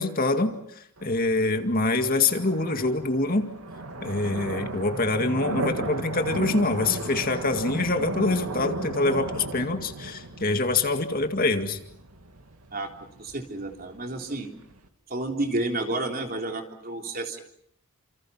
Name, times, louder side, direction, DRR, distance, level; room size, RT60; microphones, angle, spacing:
voice 1, 0.0-3.5 4.0-11.8, left 2 dB, 40° left, 6 dB, 2.1 m, -25 dB
sound 1, 1.0-14.9, right 2 dB, 85° right, 2.7 m, -36 dB
voice 2, 13.2-14.5 15.1-17.4, right 2 dB, 45° right, 3 dB, 3.6 m, -30 dB
30.0 x 27.5 x 5.8 m, 0.69 s
head